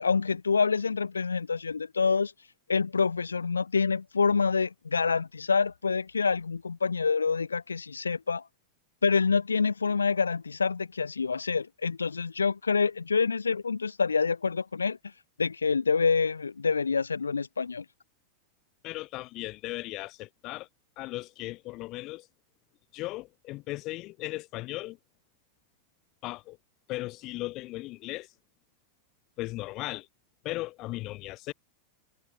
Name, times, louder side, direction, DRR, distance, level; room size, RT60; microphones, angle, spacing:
voice 1, 0.0-8.4 9.0-15.1 15.4-17.9, left 5 dB, 75° left, 0.3 m, -27 dB
voice 2, 18.8-20.7 21.0-22.3 22.9-25.0 26.2-26.6 26.9-28.3 29.4-30.1 30.4-31.5, left 19 dB, 40° left, 1.9 m, -37 dB
figure-of-eight pair, 90°, 0 cm